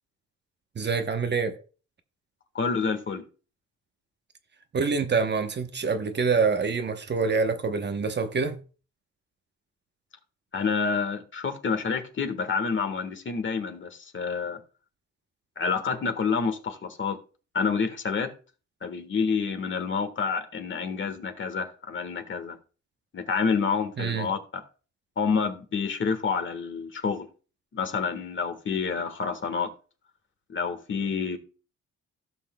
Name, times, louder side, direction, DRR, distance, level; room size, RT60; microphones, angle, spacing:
voice 1, 0.8-1.6 4.7-8.6 24.0-24.3, right 5 dB, 35° right, 0.9 m, -26 dB
voice 2, 2.5-3.2 10.5-14.6 15.6-17.2 17.5-18.3 18.8-22.6 23.1-24.6 25.2-27.3 27.7-29.7 30.5-31.4, left 5 dB, 40° left, 1.5 m, -28 dB
16.5 x 5.7 x 2.2 m
cardioid pair, 90°, 30 cm